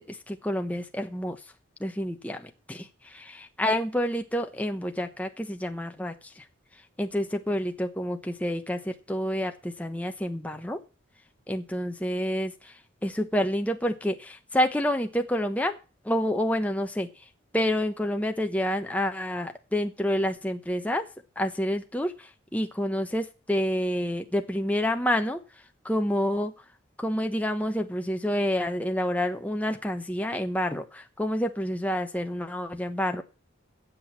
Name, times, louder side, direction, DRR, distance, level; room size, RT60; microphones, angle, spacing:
voice 1, 0.0-1.4 1.8-6.5 7.0-10.8 11.5-15.8 16.0-17.1 17.5-21.1 21.4-25.4 25.8-26.5 27.0-33.2, equal, 5° left, 5 dB, 1.0 m, -28 dB
10.0 x 7.8 x 7.3 m, 0.33 s
head